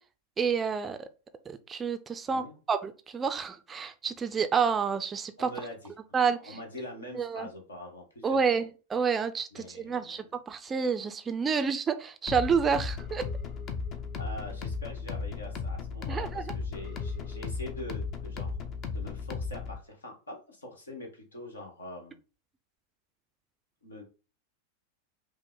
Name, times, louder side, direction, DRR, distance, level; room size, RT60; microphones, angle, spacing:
voice 1, 0.4-1.1 1.5-2.4 2.7-5.5 6.1-6.5 7.1-7.5 8.2-13.2 16.1-16.4, right 6 dB, 20° right, 9 dB, 0.4 m, -29 dB
voice 2, 5.4-5.9 6.4-8.7 9.5-10.2 14.2-18.6 18.9-22.2 23.8-24.0, left 1 dB, 75° left, 2 dB, 1.4 m, -44 dB
sound 1, 12.3-19.8, left 5 dB, 35° left, 0.6 m, -35 dB
5.4 x 2.1 x 3.7 m, 0.34 s
figure-of-eight pair, 90°, 0 cm